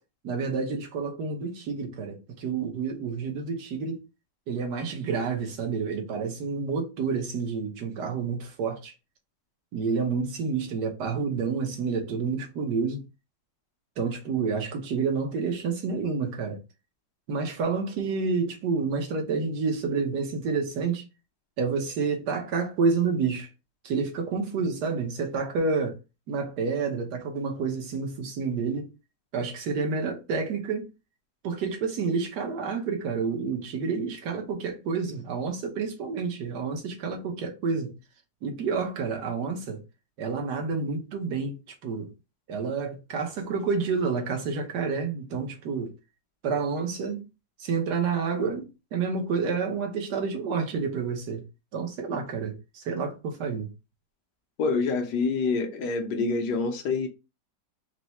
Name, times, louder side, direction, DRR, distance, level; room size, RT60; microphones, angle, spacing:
voice 1, 0.2-4.0 4.5-8.9 9.7-13.0 14.0-16.6 17.3-21.0 21.6-23.5 23.8-26.0 26.3-28.9 29.3-30.9 31.4-37.9 38.4-39.8 40.2-42.1 42.5-45.9 46.4-47.2 47.6-51.4 51.7-53.7, right 5 dB, 70° right, 1.5 m, -29 dB
voice 2, 54.6-57.1, left 4 dB, 75° left, 1.4 m, -26 dB
4.7 x 2.2 x 4.1 m
omnidirectional pair, 1.9 m